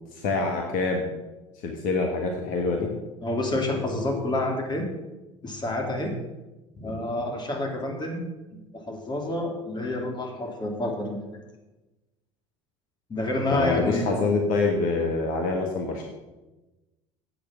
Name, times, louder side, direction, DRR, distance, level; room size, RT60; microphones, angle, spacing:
voice 1, 0.1-1.1 1.6-2.9 13.5-16.0, left 3 dB, 60° left, 2 dB, 1.5 m, -25 dB
voice 2, 3.2-4.9 5.4-6.1 6.8-8.2 8.5-11.4 13.1-14.1, left 1 dB, 25° left, 1 dB, 2.7 m, -28 dB
8.5 x 6.7 x 7.5 m, 1.1 s
hypercardioid pair, 65°, 16 cm